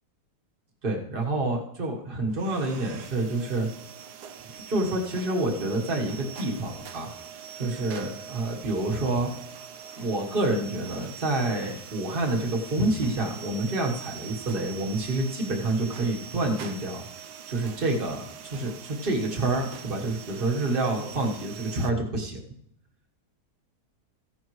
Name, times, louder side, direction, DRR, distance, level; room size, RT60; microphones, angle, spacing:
voice 1, 0.8-3.7 4.4-7.1 7.6-9.3 9.9-17.0 17.5-22.4, right 2 dB, 35° right, 2 dB, 1.4 m, -28 dB
sound 1, 2.3-21.9, right 7 dB, 80° right, 1.3 m, -43 dB
15.0 x 10.5 x 3.1 m, 0.74 s
omnidirectional pair, 1.8 m